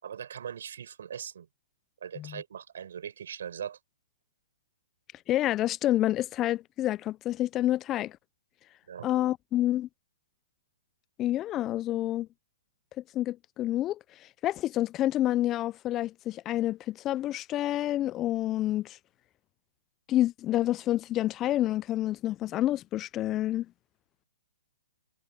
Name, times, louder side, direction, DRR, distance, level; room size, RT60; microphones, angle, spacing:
voice 1, 0.0-1.5 2.0-3.8 8.9-9.1, right 8 dB, 65° right, 7.1 m, -40 dB
voice 2, 5.3-8.2 9.0-9.9 11.2-12.3 13.1-19.0 20.1-23.7, left 14 dB, 25° left, 0.4 m, -28 dB
hypercardioid pair, 135°, 0 cm